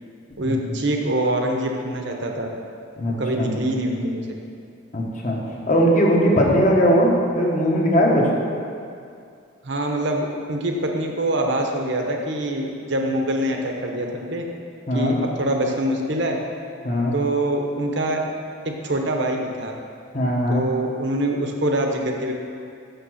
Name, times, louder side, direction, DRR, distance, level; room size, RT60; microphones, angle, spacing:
voice 1, 0.4-2.5 3.2-4.4 9.6-14.4 14.9-16.4 17.1-18.2 18.6-19.7 20.5-22.3, right 1 dB, 60° right, 2 dB, 1.0 m, -24 dB
voice 2, 3.0-3.5 4.9-5.4 5.7-8.2 14.9-15.2 16.8-17.2 20.1-20.6, equal, 40° left, -2 dB, 1.2 m, -19 dB
6.7 x 6.6 x 6.3 m, 2.4 s
head